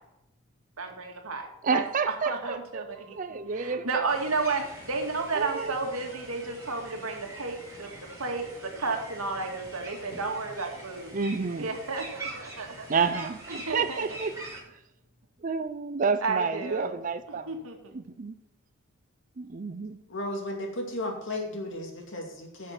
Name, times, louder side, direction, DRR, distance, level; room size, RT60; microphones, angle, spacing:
voice 1, 0.8-7.9 8.2-11.1 11.6-12.9 13.5-14.0 16.2-17.0 17.5-17.8, right 3 dB, 85° right, 3 dB, 2.1 m, -32 dB
voice 2, 1.6-2.8 3.1-4.1 5.3-5.7 11.1-11.7 12.9-14.5 15.4-17.5 17.9-18.3 19.4-20.0, right 5 dB, 40° right, 12 dB, 0.5 m, -30 dB
sound 1, 4.1-14.6, right 2 dB, 15° right, 4.6 m, -44 dB
voice 3, 20.1-22.7, left 1 dB, 60° left, 2 dB, 2.4 m, -34 dB
10.0 x 6.5 x 5.9 m, 0.89 s
head